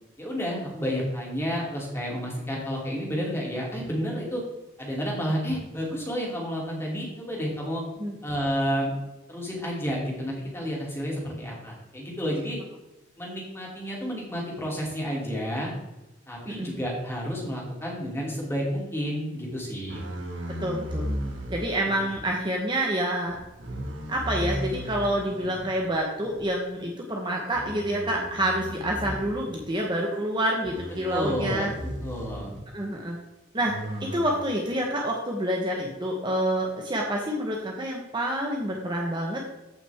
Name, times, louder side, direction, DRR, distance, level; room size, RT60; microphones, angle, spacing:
voice 1, 0.2-4.4 4.8-7.8 8.2-9.0 9.3-12.6 13.2-15.7 16.3-20.0 31.1-31.7 32.0-32.5, equal, 15° left, -3 dB, 2.8 m, -30 dB
sound 1, 19.9-22.2 23.3-25.7 26.2-26.5 27.5-29.7 30.6-32.6 33.6-34.4, equal, 75° right, 2.3 m, -36 dB
voice 2, 20.6-21.0 21.5-23.4 24.1-31.7 32.7-33.2 33.5-33.7 34.0-39.4, right 1 dB, 25° right, -1 dB, 1.1 m, -28 dB
14.0 x 6.0 x 3.5 m, 1.0 s
head